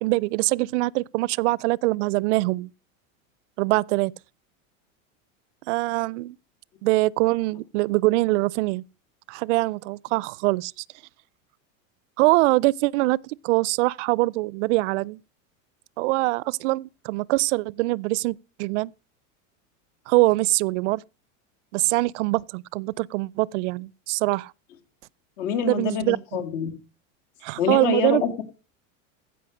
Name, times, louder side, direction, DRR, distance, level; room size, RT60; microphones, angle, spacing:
voice 1, 0.0-2.7 3.6-4.1 5.7-6.4 6.8-8.8 9.3-10.8 12.2-15.2 16.0-18.9 20.1-21.0 21.7-24.5 25.6-26.2 27.4-28.2, right 21 dB, 65° right, 0.5 m, -23 dB
voice 2, 25.4-26.7 27.6-28.4, left 7 dB, 70° left, 2.6 m, -26 dB
15.5 x 5.6 x 6.4 m
supercardioid pair, 140°, 40 cm